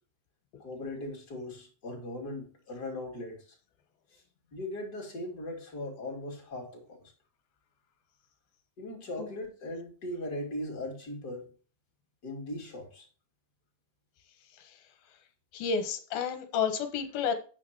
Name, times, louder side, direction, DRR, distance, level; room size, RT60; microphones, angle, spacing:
voice 1, 0.6-3.5 4.1-4.2 4.5-7.1 8.8-11.5 12.2-13.1, left 1 dB, 30° left, 2.6 m, -39 dB
voice 2, 14.5-14.9 15.5-17.3, left 6 dB, 70° left, 2.8 m, -31 dB
9.2 x 8.9 x 2.9 m
omnidirectional pair, 4.7 m